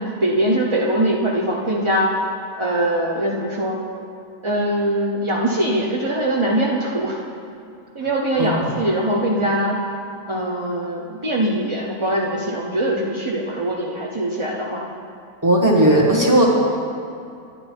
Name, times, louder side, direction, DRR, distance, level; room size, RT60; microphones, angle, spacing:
voice 1, 0.0-2.1 2.6-3.8 4.4-7.2 7.9-9.8 10.3-14.9, right 1 dB, 30° right, -3 dB, 0.5 m, -22 dB
voice 2, 15.4-16.5, right 1 dB, 10° right, -2 dB, 1.3 m, -16 dB
11.0 x 10.0 x 4.4 m, 2.5 s
omnidirectional pair, 1.7 m